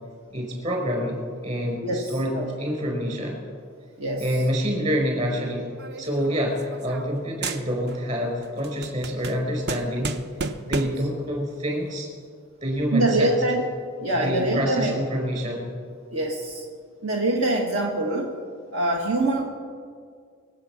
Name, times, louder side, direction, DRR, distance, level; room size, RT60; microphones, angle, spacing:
voice 1, 0.3-3.4 4.2-5.7 6.0-10.1 10.6-12.1 12.6-13.4 14.1-15.7, equal, 35° right, 1 dB, 4.4 m, -27 dB
sound 1, 5.8-7.2 7.4-8.1 8.4-11.1, right 4 dB, 50° right, 0.8 m, -33 dB
voice 2, 12.9-13.6 14.0-14.9 16.1-16.6 17.0-18.3 18.7-19.4, right 2 dB, 75° right, 0 dB, 1.6 m, -24 dB
25.0 x 8.3 x 5.9 m, 2.1 s
head